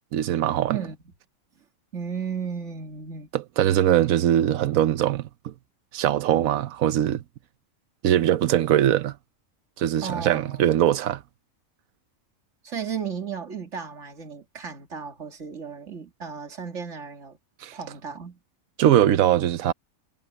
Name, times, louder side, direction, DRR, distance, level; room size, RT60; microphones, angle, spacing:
voice 1, 0.1-0.8 3.3-5.5 5.9-7.2 8.0-9.2 9.8-11.2 17.6-17.7 18.8-19.7, right 11 dB, 90° right, 1.1 m, -21 dB
voice 2, 0.7-1.1 1.9-3.3 10.0-10.7 12.6-17.4 17.7-18.4, right 6 dB, 60° right, 2.5 m, -34 dB
omnidirectional pair, 1.4 m